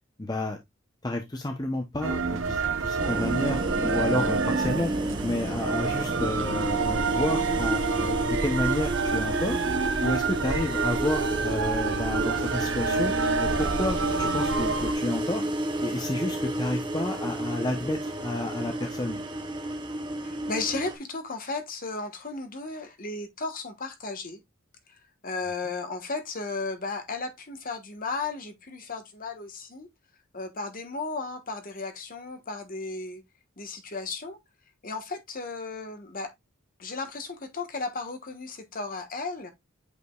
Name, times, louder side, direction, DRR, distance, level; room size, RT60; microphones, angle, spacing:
voice 1, 0.2-0.6 1.0-4.9 5.2-9.6 10.0-13.1 13.4-15.4 15.8-19.2, left 1 dB, 20° left, 0.8 m, -30 dB
sound 1, 2.0-14.9, right 4 dB, 65° right, 0.7 m, -28 dB
sound 2, 3.0-20.9, right 1 dB, 25° right, 1.1 m, -31 dB
voice 2, 20.2-24.4 25.2-29.9 30.3-33.2 33.6-34.4 34.8-36.3 36.8-39.5, left 3 dB, 45° left, 1.3 m, -34 dB
8.2 x 5.0 x 2.3 m
head